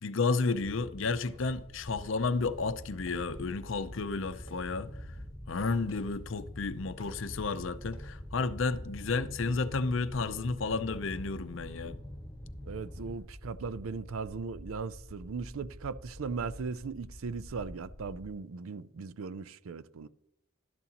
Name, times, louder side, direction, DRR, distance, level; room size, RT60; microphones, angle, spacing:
voice 1, 0.0-4.9 5.5-12.0, left 4 dB, 65° left, 0.6 m, -32 dB
sound 1, 0.5-13.1, left 1 dB, 25° left, 1.7 m, -46 dB
sound 2, 3.1-18.3, equal, 5° right, 0.7 m, -50 dB
voice 2, 12.7-20.1, right 5 dB, 80° right, 0.5 m, -38 dB
12.0 x 11.0 x 2.9 m
head